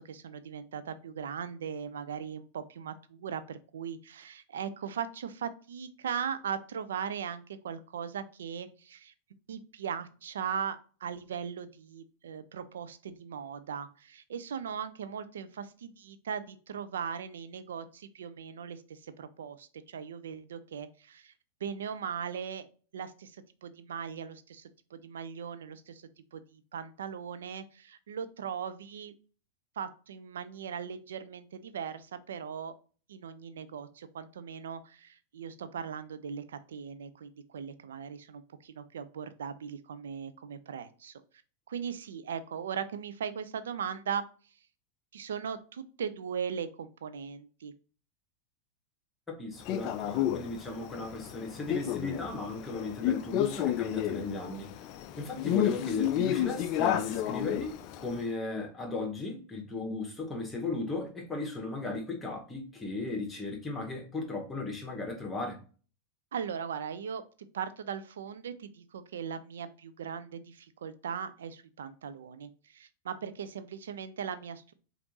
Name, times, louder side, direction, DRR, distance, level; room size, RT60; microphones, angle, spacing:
voice 1, 0.0-9.1 9.5-21.3 21.6-22.7 22.9-29.1 29.8-32.7 33.1-41.2 41.7-44.3 45.1-47.7 66.3-74.7, right 7 dB, 65° right, 0.4 m, -39 dB
voice 2, 49.3-54.7 55.2-65.6, left 3 dB, 10° left, 1.1 m, -36 dB
Male speech man speaking, 49.7-58.2, left 12 dB, 40° left, 0.3 m, -31 dB
5.0 x 2.5 x 2.9 m
figure-of-eight pair, 90°, 0 cm